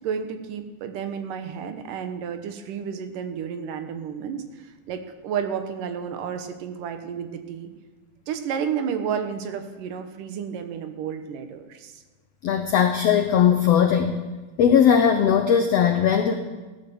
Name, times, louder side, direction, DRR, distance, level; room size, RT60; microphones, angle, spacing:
voice 1, 0.0-7.7 8.3-12.0, right 7 dB, 75° right, 7 dB, 2.6 m, -31 dB
voice 2, 12.4-14.2 14.6-16.3, left 8 dB, 85° left, 6 dB, 1.4 m, -19 dB
15.5 x 11.0 x 7.0 m, 1.3 s
omnidirectional pair, 3.9 m